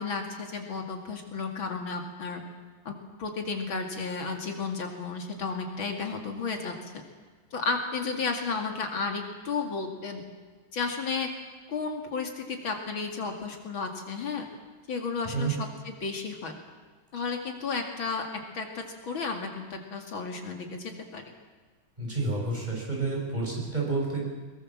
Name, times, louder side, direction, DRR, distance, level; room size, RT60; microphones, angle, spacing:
voice 1, 0.0-2.4 2.8-6.7 7.5-10.2 10.7-11.3 11.7-14.5 14.9-16.6 17.1-18.2 18.5-21.2, left 4 dB, 70° left, 3 dB, 3.0 m, -33 dB
voice 2, 22.0-24.2, right 3 dB, 20° right, -3 dB, 6.8 m, -29 dB
22.5 x 22.0 x 7.4 m, 1.5 s
omnidirectional pair, 2.3 m